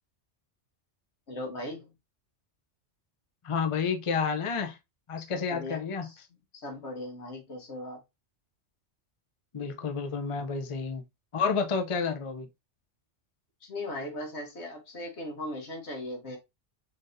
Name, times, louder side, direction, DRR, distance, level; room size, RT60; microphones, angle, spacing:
voice 1, 1.3-1.9 5.2-6.2 6.6-8.0 13.6-16.4, left 1 dB, 65° left, 1.7 m, -38 dB
voice 2, 3.4-4.8 5.1-6.1 9.5-11.0 11.3-12.5, left 5 dB, 45° left, 0.4 m, -30 dB
3.9 x 3.9 x 2.6 m
omnidirectional pair, 1.3 m